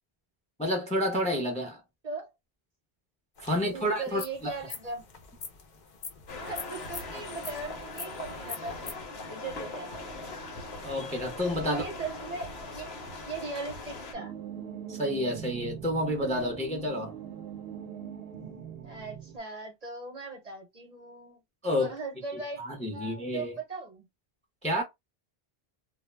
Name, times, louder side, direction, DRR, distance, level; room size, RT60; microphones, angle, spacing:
voice 1, 0.6-1.8 3.4-4.5 10.8-11.8 14.9-17.1 21.6-21.9 22.6-23.6 24.6-24.8, equal, 10° left, 0.5 m, -29 dB
sound 1, 3.4-8.9, left 5 dB, 55° left, 0.7 m, -44 dB
voice 2, 3.5-5.0 6.4-10.1 11.6-12.9 13.2-14.3 18.8-21.4 21.8-22.6 22.9-24.1, right 3 dB, 45° right, 0.7 m, -39 dB
sound 2, 6.3-14.1, left 2 dB, 80° left, 1.0 m, -40 dB
sound 3, 14.1-19.4, right 8 dB, 75° right, 0.8 m, -41 dB
2.2 x 2.0 x 3.1 m
omnidirectional pair, 1.0 m